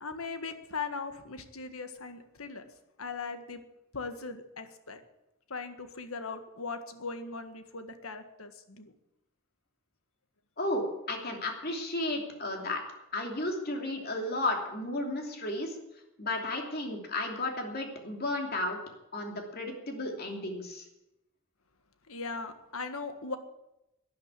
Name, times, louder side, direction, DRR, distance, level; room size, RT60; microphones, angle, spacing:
voice 1, 0.0-2.6 3.0-3.6 3.9-5.0 5.5-8.9 22.1-23.4, left 4 dB, 85° left, 8 dB, 1.6 m, -39 dB
voice 2, 10.6-12.8 13.1-15.8 16.2-18.8 19.1-20.8, left 2 dB, 45° left, 2 dB, 2.9 m, -33 dB
12.0 x 10.5 x 8.4 m, 0.91 s
head